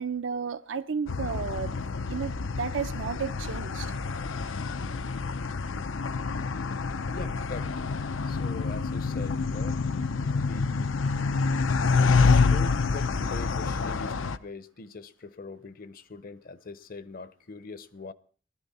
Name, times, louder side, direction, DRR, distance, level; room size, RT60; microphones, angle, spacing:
voice 1, 0.0-1.7 2.1-3.9, right 6 dB, 80° right, 0.7 m, -33 dB
sound 1, 1.1-14.4, left 4 dB, 90° left, 0.6 m, -27 dB
voice 2, 7.1-7.8 8.2-9.8 10.4-11.0 12.0-18.1, left 3 dB, 50° left, 0.7 m, -42 dB
19.5 x 13.5 x 4.2 m
head